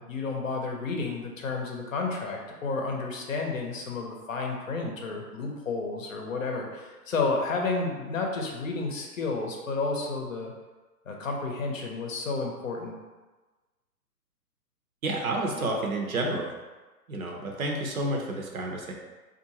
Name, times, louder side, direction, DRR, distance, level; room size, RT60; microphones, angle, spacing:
voice 1, 0.0-10.5 11.1-12.9, left 3 dB, 55° left, 1 dB, 0.7 m, -31 dB
voice 2, 15.0-16.5 17.1-18.9, right 2 dB, 60° right, 1 dB, 0.7 m, -30 dB
3.6 x 2.5 x 2.8 m, 1.2 s
figure-of-eight pair, 125°, 48 cm